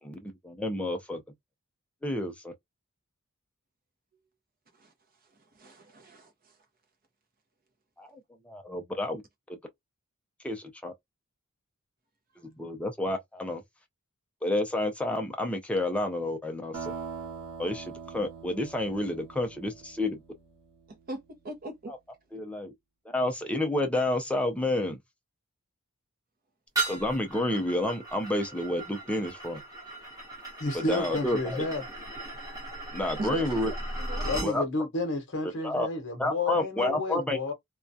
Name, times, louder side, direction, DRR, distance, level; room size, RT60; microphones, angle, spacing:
voice 1, 0.0-1.2 2.0-2.5 8.0-9.2 9.5-9.6 10.4-10.9 12.6-13.6 14.4-16.9 17.6-20.2 21.9-22.0 22.3-22.7 23.1-25.0 26.9-29.6 30.7-31.7 32.9-33.7 34.4-34.6 35.6-35.9 36.2-37.5, left 1 dB, 5° left, 0.4 m, -30 dB
voice 2, 5.5-6.5 20.9-21.9 33.2-33.6 34.0-34.3, right 2 dB, 40° right, 0.6 m, -39 dB
sound 1, 16.7-21.0, right 5 dB, 80° right, 0.8 m, -42 dB
sound 2, 26.8-34.5, right 2 dB, 15° right, 0.9 m, -37 dB
voice 3, 30.6-31.8 34.2-37.5, left 2 dB, 55° left, 0.8 m, -31 dB
2.3 x 2.1 x 2.5 m
head